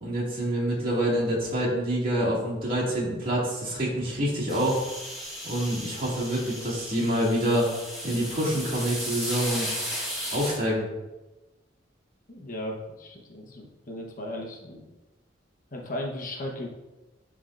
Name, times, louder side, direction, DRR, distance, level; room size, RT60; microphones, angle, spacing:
voice 1, 0.0-4.8 5.4-7.7 8.0-9.7 10.3-10.9, equal, 50° right, -5 dB, 2.1 m, -26 dB
sound 1, 4.5-10.6, equal, 5° right, 1.8 m, -35 dB
voice 2, 12.3-14.9 15.7-16.7, left 1 dB, 45° left, -1 dB, 1.0 m, -36 dB
10.5 x 3.6 x 2.5 m, 1.1 s
head